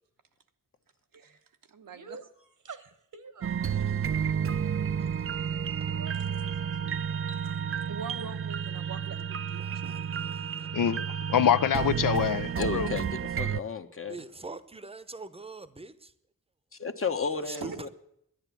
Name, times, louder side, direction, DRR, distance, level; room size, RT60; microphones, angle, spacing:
voice 1, 1.7-2.2 7.4-7.6 7.9-10.0 17.5-17.8, right 5 dB, 90° right, 1.1 m, -43 dB
voice 2, 2.6-4.1 4.5-4.6 5.8-6.9 8.8-8.9, right 5 dB, 65° right, 1.2 m, -48 dB
sound 1, 3.4-13.6, right 8 dB, 40° right, 0.5 m, -31 dB
voice 3, 5.0-5.9 9.6-10.8 14.1-16.1 17.3-17.9, right 3 dB, 15° right, 0.8 m, -44 dB
voice 4, 10.7-12.9, left 9 dB, 75° left, 0.6 m, -25 dB
voice 5, 12.6-14.2 16.8-17.9, left 4 dB, 40° left, 1.0 m, -33 dB
11.0 x 10.5 x 8.3 m
wide cardioid pair, 75°, 33 cm